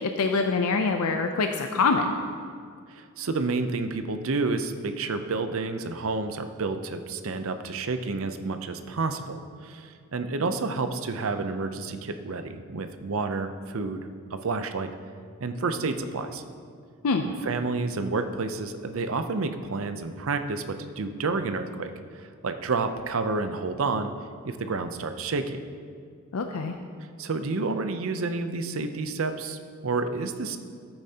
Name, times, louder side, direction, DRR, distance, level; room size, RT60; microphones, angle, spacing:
voice 1, 0.0-2.1 17.0-17.2 26.3-26.7, left 4 dB, 85° left, 5 dB, 0.5 m, -25 dB
voice 2, 2.9-14.9 15.4-16.4 17.2-24.1 24.4-25.6 27.2-30.6, right 3 dB, 65° right, 8 dB, 0.6 m, -30 dB
13.5 x 8.8 x 2.8 m, 2.1 s
head